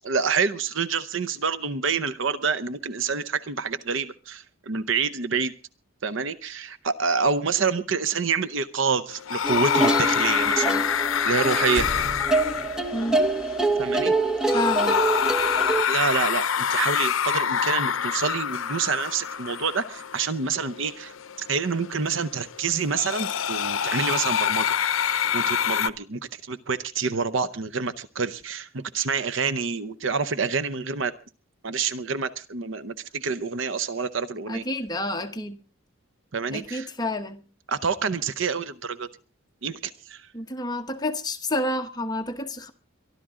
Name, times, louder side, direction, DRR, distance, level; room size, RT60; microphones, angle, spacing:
voice 1, 0.0-5.5 6.0-10.8 11.2-11.9 13.8-14.1 15.9-24.8 25.3-31.1 31.6-34.6 36.3-36.9 37.7-39.1 39.6-40.3, right 5 dB, 65° right, 0.7 m, -27 dB
sound 1, 9.1-25.9, left 8 dB, 70° left, 0.7 m, -27 dB
sound 2, 9.4-15.8, right 2 dB, 5° right, 1.1 m, -25 dB
sound 3, 11.6-15.4, equal, 30° right, 2.6 m, -39 dB
voice 2, 12.9-13.2 14.5-15.0 34.5-35.6 36.5-37.4 40.3-42.7, left 1 dB, 20° left, 1.1 m, -29 dB
23.0 x 12.5 x 3.7 m
head